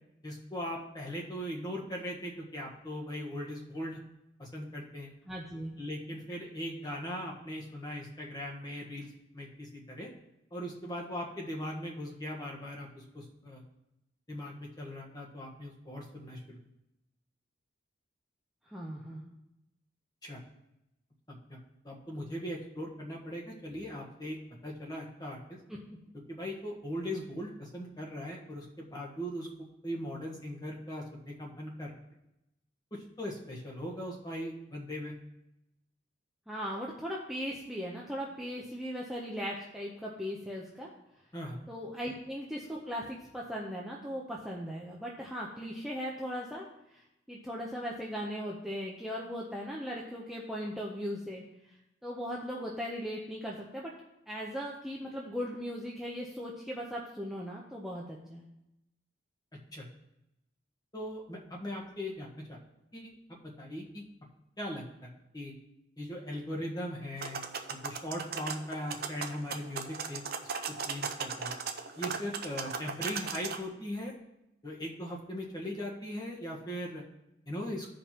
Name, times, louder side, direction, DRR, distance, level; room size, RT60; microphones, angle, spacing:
voice 1, 0.2-4.0 4.4-5.1 5.8-10.1 10.5-13.6 14.3-16.6 20.2-20.4 21.3-21.6 21.8-24.4 24.6-25.6 26.3-29.5 29.8-31.9 32.9-35.1 41.3-41.6 59.7-59.9 60.9-62.6 62.9-64.0 64.6-65.5 66.0-67.4 67.7-70.3 70.7-71.5 72.0-74.1 74.6-77.0 77.5-77.9, equal, 20° left, -2 dB, 1.2 m, -39 dB
voice 2, 5.3-5.7 18.6-19.3 25.7-25.8 36.5-40.9 41.7-51.4 52.0-53.9 54.3-58.5, equal, ahead, -4 dB, 0.7 m, -38 dB
sound 1, 67.2-73.6, right 5 dB, 50° right, 0.6 m, -37 dB
15.0 x 5.2 x 2.9 m, 0.87 s
head